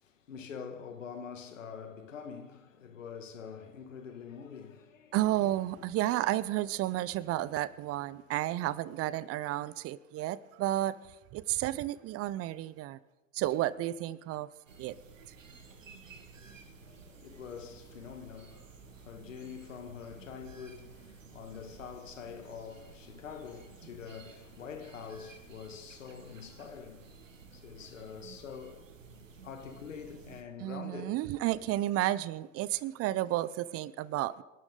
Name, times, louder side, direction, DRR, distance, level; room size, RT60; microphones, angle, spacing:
voice 1, 0.0-5.2 5.4-5.5 16.8-27.2 27.5-28.8 29.4-31.2, left 6 dB, 80° left, 2.0 m, -45 dB
voice 2, 5.1-13.0 13.3-14.5 14.8-15.0 15.3-15.4 30.6-34.4, right 15 dB, 40° right, 0.6 m, -32 dB
sound 1, 14.7-30.4, right 4 dB, 85° right, 1.5 m, -53 dB
26.0 x 12.0 x 3.8 m
figure-of-eight pair, 80°, 38 cm